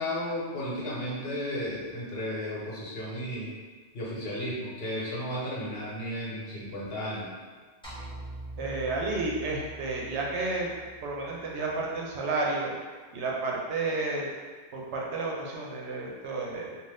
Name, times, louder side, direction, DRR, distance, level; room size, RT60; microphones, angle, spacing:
voice 1, 0.0-3.5 3.9-7.3, left 1 dB, 65° left, -6 dB, 1.1 m, -34 dB
sound 1, 7.8-12.2, right 2 dB, 5° left, 0.9 m, -44 dB
voice 2, 8.6-10.7 11.0-12.7 13.1-14.3 14.7-16.8, right 3 dB, 90° right, -2 dB, 0.9 m, -31 dB
2.6 x 2.4 x 3.4 m, 1.4 s
omnidirectional pair, 1.1 m